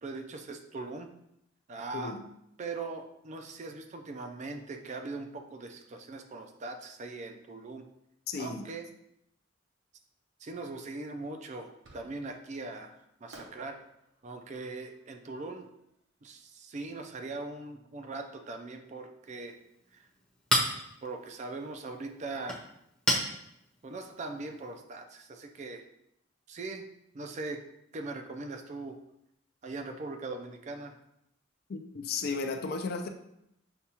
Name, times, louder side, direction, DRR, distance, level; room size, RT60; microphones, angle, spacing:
voice 1, 0.0-1.1 1.7-2.2 2.6-7.9 8.4-8.9 10.4-13.8 14.2-15.7 16.2-19.5 19.9-20.0 21.0-22.7 23.8-25.8 26.5-26.8 27.1-27.6 27.9-29.0 29.6-31.0, right 3 dB, 35° right, 5 dB, 0.4 m, -40 dB
voice 2, 1.9-2.3 8.3-8.7 31.7-33.1, left 4 dB, 50° left, 6 dB, 0.4 m, -34 dB
Fireworks, 11.8-12.5 13.3-16.4, right 1 dB, 65° right, 0.8 m, -56 dB
Chink clink, 19.2-24.8, left 1 dB, 5° left, 0.7 m, -35 dB
6.6 x 2.3 x 2.8 m, 0.79 s
head